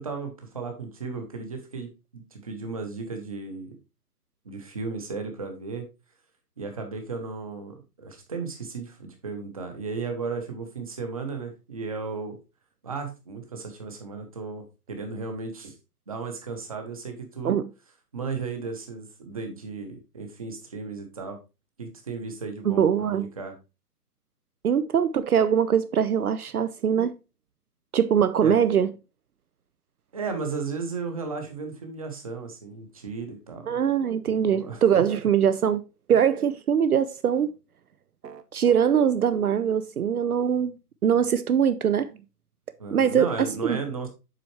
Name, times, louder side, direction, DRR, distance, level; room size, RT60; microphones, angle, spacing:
voice 1, 0.0-3.7 4.4-5.8 6.6-12.4 12.8-15.7 16.1-17.6 18.1-21.4 21.8-23.5 28.4-28.6 30.1-33.7 34.2-34.8 42.8-44.1, right 4 dB, 20° right, 1.0 m, -35 dB
voice 2, 22.6-23.3 24.6-27.1 27.9-28.9 33.7-35.8 36.1-37.5 38.5-40.7 41.0-42.1 42.9-43.8, right 8 dB, 65° right, 0.7 m, -22 dB
sound 1, 38.2-38.9, right 7 dB, 85° right, 1.0 m, -43 dB
7.5 x 5.6 x 3.1 m
hypercardioid pair, 170°, 48 cm